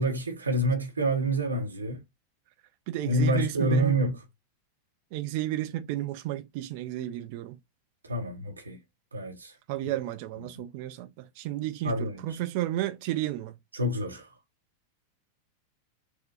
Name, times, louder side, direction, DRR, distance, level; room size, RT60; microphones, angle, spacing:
voice 1, 0.0-2.0 3.0-4.2 8.0-8.8 9.1-9.6 10.4-10.5 11.8-12.4 13.7-14.3, right 1 dB, 75° right, 0.9 m, -28 dB
voice 2, 2.9-4.0 5.1-7.6 9.7-13.6, right 14 dB, 45° right, 0.4 m, -32 dB
4.4 x 2.2 x 4.0 m
figure-of-eight pair, 90°, 0 cm